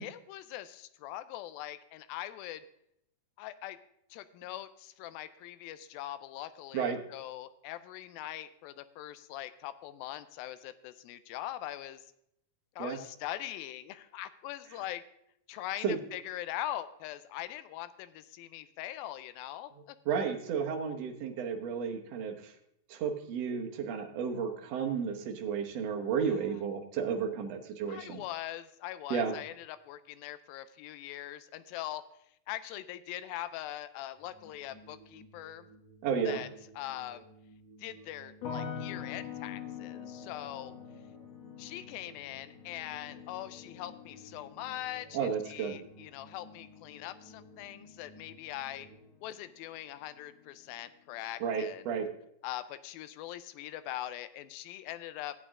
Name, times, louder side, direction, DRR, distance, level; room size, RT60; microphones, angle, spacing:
voice 1, 0.0-2.6 3.4-3.8 4.1-12.0 12.8-15.0 15.5-20.0 27.9-32.0 32.5-35.7 36.3-36.5 36.8-37.2 37.8-40.7 41.6-48.9 49.2-51.8 52.4-55.3, left 13 dB, 90° left, 13 dB, 2.4 m, -42 dB
voice 2, 20.1-22.5 22.9-28.2 29.1-29.4 36.0-36.4 45.1-45.8 51.4-52.1, right 6 dB, 65° right, 3 dB, 1.8 m, -32 dB
sound 1, 34.1-49.0, right 2 dB, 30° left, 6.3 m, -57 dB
sound 2, 38.4-49.5 49.8-50.5, left 8 dB, 60° left, 1.9 m, -46 dB
15.0 x 8.5 x 3.6 m, 0.75 s
omnidirectional pair, 4.1 m